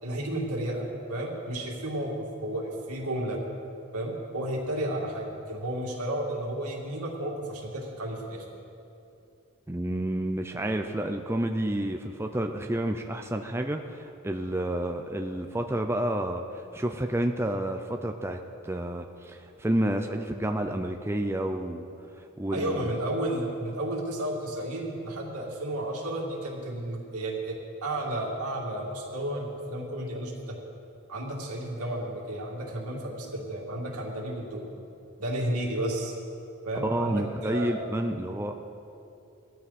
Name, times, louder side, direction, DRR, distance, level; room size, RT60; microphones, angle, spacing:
voice 1, 0.0-3.4 3.9-8.4 22.5-30.6 31.1-34.6 35.2-36.1 36.6-37.8, right 1 dB, 85° right, -1 dB, 2.6 m, -32 dB
voice 2, 9.7-21.9 22.4-22.9 36.8-38.5, right 1 dB, 10° right, 4 dB, 0.5 m, -30 dB
18.5 x 13.5 x 4.3 m, 2.7 s
head